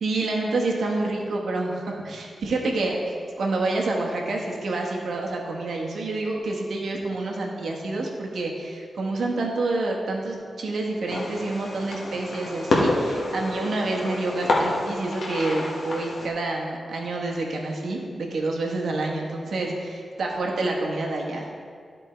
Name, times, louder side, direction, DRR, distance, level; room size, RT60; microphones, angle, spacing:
voice 1, 0.0-3.0 3.4-21.5, right 2 dB, 80° right, 0 dB, 1.2 m, -28 dB
Fireworks, 11.1-16.3, left 2 dB, 70° left, 1.3 m, -28 dB
12.5 x 4.5 x 4.4 m, 2.2 s
wide cardioid pair, 150°, 0 cm